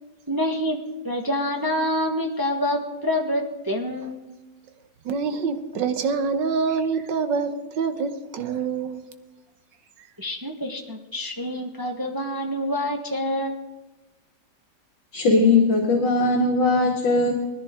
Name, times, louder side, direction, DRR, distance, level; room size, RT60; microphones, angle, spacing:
voice 1, 0.3-0.8 1.0-4.2 10.2-13.6, left 1 dB, 15° right, 3 dB, 1.0 m, -27 dB
voice 2, 5.0-9.0, right 5 dB, 75° right, 9 dB, 1.8 m, -26 dB
voice 3, 15.1-17.3, left 3 dB, 75° left, -1 dB, 2.6 m, -19 dB
19.5 x 14.0 x 3.7 m, 1.1 s
omnidirectional pair, 2.0 m